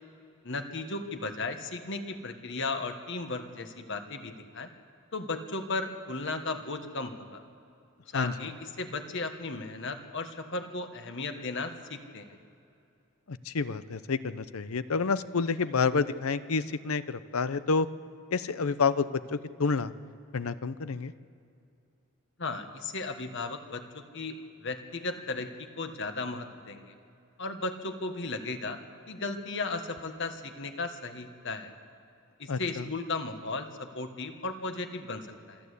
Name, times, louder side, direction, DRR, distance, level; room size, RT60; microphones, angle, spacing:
voice 1, 0.4-4.7 5.1-7.4 8.1-12.4 22.4-26.8 27.4-28.8 29.1-31.7 32.4-35.6, left 3 dB, 60° left, 6 dB, 1.5 m, -35 dB
voice 2, 8.1-8.5 13.3-17.9 18.3-19.9 20.3-21.1 32.5-32.9, left 4 dB, 85° left, 14 dB, 0.7 m, -29 dB
26.5 x 11.5 x 8.4 m, 2.7 s
head